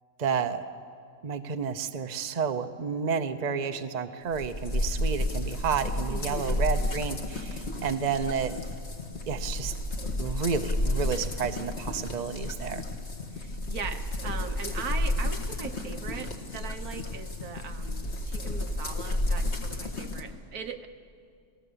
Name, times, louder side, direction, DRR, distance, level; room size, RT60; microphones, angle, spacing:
voice 1, 0.2-0.6 1.2-8.5 9.3-9.7 10.2-12.8, right 6 dB, 35° right, 8 dB, 0.8 m, -31 dB
sound 1, 4.3-20.2, left 1 dB, 45° left, 2.1 m, -31 dB
voice 2, 6.1-6.6 13.3-20.9, right 6 dB, 80° right, 7 dB, 1.6 m, -39 dB
28.5 x 18.5 x 7.0 m, 2.4 s
omnidirectional pair, 1.5 m